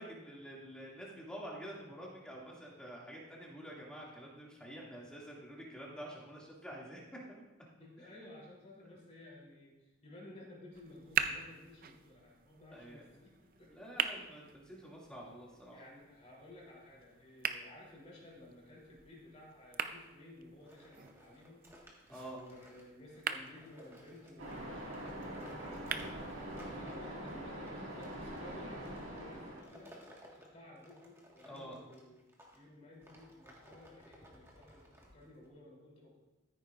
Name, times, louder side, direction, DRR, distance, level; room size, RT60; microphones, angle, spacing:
voice 1, 0.0-7.0 8.8-8.9 12.7-13.1 13.7-15.8 22.1-22.4 31.5-31.8, equal, 5° left, -4 dB, 2.2 m, -48 dB
voice 2, 7.8-14.1 15.7-21.7 22.3-30.0 30.2-32.2 32.5-36.2, left 1 dB, 35° left, -4 dB, 3.1 m, -55 dB
sound 1, 10.7-26.7, right 7 dB, 45° right, 0.5 m, -43 dB
sound 2, 20.6-32.6 33.0-35.5, equal, 15° right, 1.5 m, -59 dB
Waves surf, 24.4-29.6, right 1 dB, 75° right, 1.9 m, -44 dB
14.0 x 9.6 x 2.5 m, 1.0 s
head